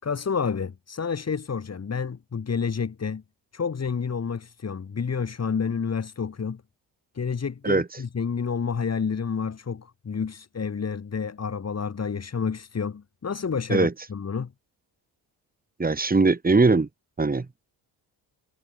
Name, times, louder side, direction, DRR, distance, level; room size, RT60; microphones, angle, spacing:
voice 1, 0.0-3.2 3.5-6.6 7.1-14.5, left 6 dB, 35° left, 6.1 m, -29 dB
voice 2, 15.8-16.9 17.2-17.5, right 3 dB, 20° right, 4.6 m, -20 dB
cardioid pair, 95°, 42 cm